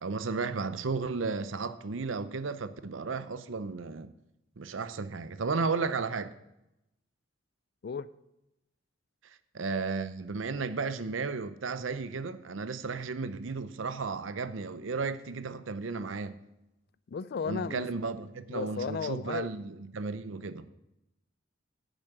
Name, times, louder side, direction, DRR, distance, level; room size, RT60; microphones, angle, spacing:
voice 1, 0.0-4.1 4.6-6.3 9.5-16.3 17.5-20.7, right 4 dB, 75° right, 0.7 m, -34 dB
voice 2, 17.1-17.9 18.5-19.5, left 5 dB, 55° left, 0.4 m, -34 dB
10.0 x 7.3 x 6.5 m
head